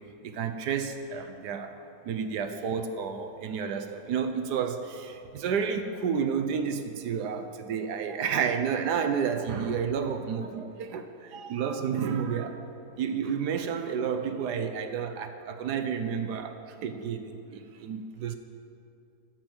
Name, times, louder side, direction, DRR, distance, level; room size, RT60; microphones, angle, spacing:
voice 1, 0.0-12.7 13.0-18.3, right 7 dB, 80° right, 7 dB, 1.3 m, -31 dB
10.5 x 7.5 x 7.9 m, 2.6 s
omnidirectional pair, 1.7 m